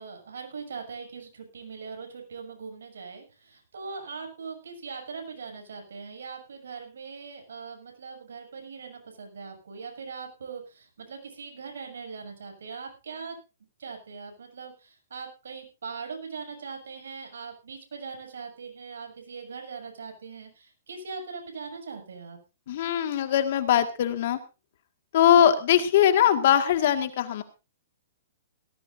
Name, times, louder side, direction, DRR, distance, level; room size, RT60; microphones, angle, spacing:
voice 1, 0.0-13.4 13.8-22.4, right 5 dB, 85° right, 3 dB, 6.7 m, -41 dB
voice 2, 22.7-24.4 25.1-27.4, left 10 dB, 55° left, 9 dB, 1.9 m, -21 dB
18.5 x 16.5 x 2.7 m, 0.29 s
hypercardioid pair, 155°, 0 cm